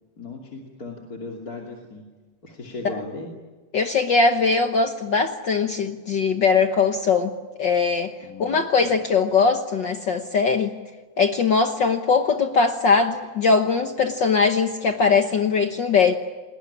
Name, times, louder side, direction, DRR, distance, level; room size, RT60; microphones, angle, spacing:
voice 1, 0.2-2.0 2.4-3.3 8.2-8.6, left 2 dB, 30° left, -1 dB, 2.9 m, -37 dB
voice 2, 3.7-7.3 7.6-8.1 8.4-10.7 11.2-16.1, left 4 dB, 60° left, 6 dB, 1.2 m, -20 dB
29.5 x 20.0 x 10.0 m, 1.3 s
omnidirectional pair, 3.5 m